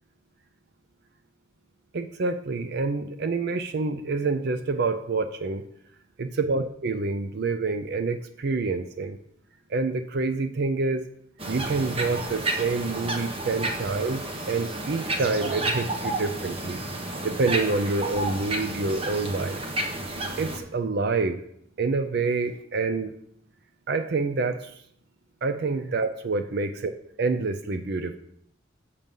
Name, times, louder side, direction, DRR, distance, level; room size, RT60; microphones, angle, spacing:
voice 1, 1.9-5.6 6.2-9.2 9.7-11.1 11.5-16.8 17.2-19.6 20.4-21.4 21.8-23.1 23.9-24.8 25.4-26.9 27.2-28.2, right 3 dB, 55° right, 9 dB, 0.5 m, -27 dB
sound 1, 11.4-20.6, right 2 dB, 30° right, 1.1 m, -31 dB
7.5 x 6.7 x 5.4 m, 0.69 s
head